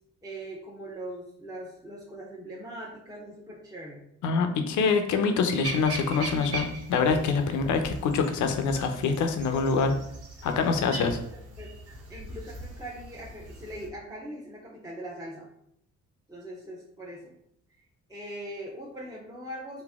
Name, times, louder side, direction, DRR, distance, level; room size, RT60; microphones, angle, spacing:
voice 1, 0.2-4.0 7.4-7.9 11.0-11.7 12.1-15.5 16.3-17.4 18.1-19.8, right 1 dB, 10° right, -5 dB, 0.8 m, -41 dB
voice 2, 4.2-9.9 10.4-11.2, left 5 dB, 75° left, 6 dB, 0.6 m, -25 dB
sound 1, 5.6-13.9, right 2 dB, 55° right, 1.0 m, -40 dB
3.9 x 2.7 x 3.5 m, 0.73 s
cardioid pair, 90°, 30 cm